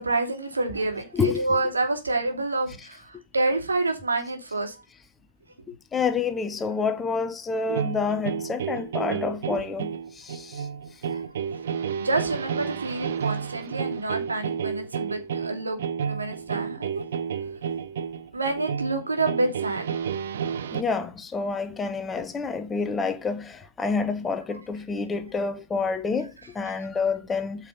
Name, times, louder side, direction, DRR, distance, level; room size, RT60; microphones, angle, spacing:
voice 1, 0.0-4.8 11.0-11.2 11.8-15.8 16.0-17.0 18.3-20.0, right 2 dB, 75° right, 2.9 m, -28 dB
voice 2, 1.1-1.4 5.7-10.7 20.7-27.7, left 4 dB, 10° left, 1.0 m, -28 dB
sound 1, 7.7-20.8, right 7 dB, 55° right, 0.9 m, -31 dB
8.6 x 5.7 x 5.4 m
figure-of-eight pair, 115°, 0 cm